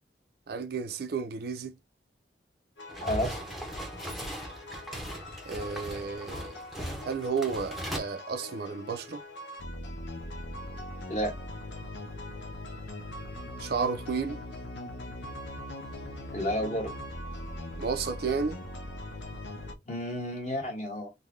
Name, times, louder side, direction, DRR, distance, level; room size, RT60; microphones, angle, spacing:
voice 1, 0.5-1.7 5.5-6.6 7.0-9.2 13.6-14.4 17.8-18.6, right 5 dB, 55° right, 0.4 m, -32 dB
sound 1, 2.8-19.7, left 1 dB, 80° left, 0.7 m, -41 dB
sound 2, 2.9-8.0, right 1 dB, ahead, 0.7 m, -38 dB
voice 2, 3.0-3.4 11.1-11.3 16.3-16.9 19.8-21.1, equal, 40° left, 1.4 m, -31 dB
3.7 x 2.2 x 3.1 m
head